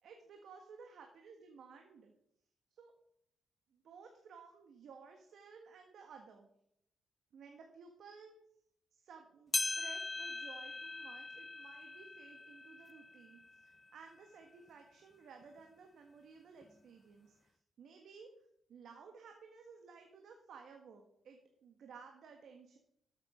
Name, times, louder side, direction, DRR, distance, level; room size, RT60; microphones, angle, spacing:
voice 1, 0.0-2.1 2.7-2.9 3.7-6.5 7.3-8.3 8.9-17.5 17.8-18.3 18.7-22.8, right 5 dB, 70° right, 3 dB, 1.5 m, -56 dB
sound 1, 9.5-14.2 14.7-14.8 15.6-15.7 16.6-16.7, left 3 dB, 25° left, 0.5 m, -41 dB
13.0 x 7.4 x 5.0 m, 0.75 s
cardioid pair, 70°, 0 cm